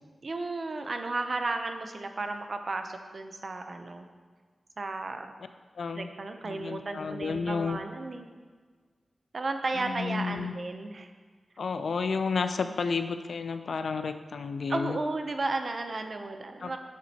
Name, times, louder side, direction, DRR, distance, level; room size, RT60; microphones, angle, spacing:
voice 1, 0.2-4.1 4.8-5.3 5.9-8.3 9.3-11.1 14.7-16.8, right 3 dB, 50° right, 6 dB, 0.6 m, -34 dB
voice 2, 5.8-6.1 6.4-7.8 9.8-10.5 11.6-15.0 16.6-16.8, left 5 dB, 80° left, 9 dB, 0.4 m, -31 dB
8.5 x 7.3 x 2.9 m, 1.5 s
wide cardioid pair, 105°, 0 cm